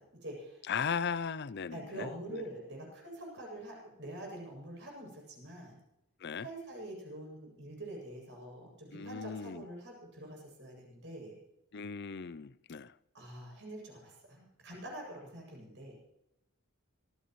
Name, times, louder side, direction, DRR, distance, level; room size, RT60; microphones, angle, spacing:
voice 1, 0.0-0.6 1.7-5.8 6.4-11.4 13.1-15.9, right 1 dB, 55° right, 7.9 m, -45 dB
voice 2, 0.7-2.4 6.2-6.5 8.9-9.6 11.7-12.9, left 6 dB, 50° left, 0.5 m, -37 dB
25.5 x 16.5 x 3.2 m
head